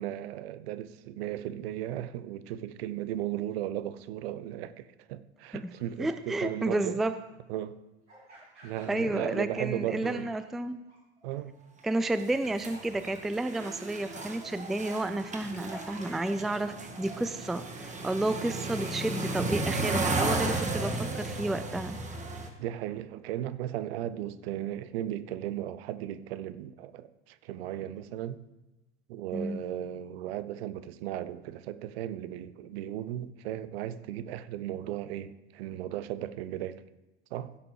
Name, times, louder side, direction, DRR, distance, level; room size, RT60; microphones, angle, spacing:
voice 1, 0.0-7.0 7.5-7.8 8.6-10.3 11.2-11.6 22.6-28.4 29.1-36.8 37.3-37.5, right 12 dB, 60° right, 0.7 m, -36 dB
sound 1, 5.7-6.0 8.1-9.7 10.0-10.5 10.9-11.4 11.7-12.0 12.7-13.0 13.5-13.7 14.1-16.3, right 1 dB, 90° right, 3.2 m, -50 dB
voice 2, 6.0-7.1 8.9-10.8 11.8-22.0 29.3-29.6, right 2 dB, ahead, 0.4 m, -31 dB
sound 2, 12.2-22.5, right 2 dB, 20° right, 1.8 m, -34 dB
16.0 x 5.9 x 4.9 m
figure-of-eight pair, 80°, 34 cm